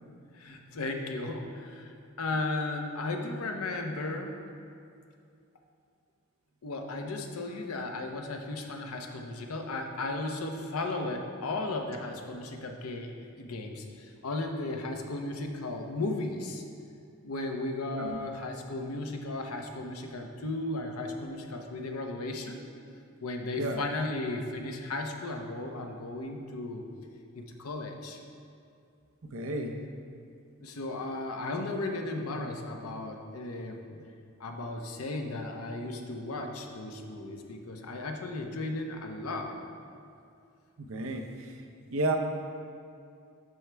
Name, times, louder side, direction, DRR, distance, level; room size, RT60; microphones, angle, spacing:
voice 1, 0.3-4.3 6.6-16.6 17.2-22.6 23.2-26.8 27.3-28.2 30.6-34.1 34.4-39.6, left 2 dB, 90° left, 3 dB, 0.8 m, -35 dB
voice 2, 29.2-29.8 40.8-41.5 41.9-42.2, right 2 dB, 70° right, 3 dB, 0.7 m, -32 dB
11.0 x 4.6 x 3.3 m, 2.4 s
head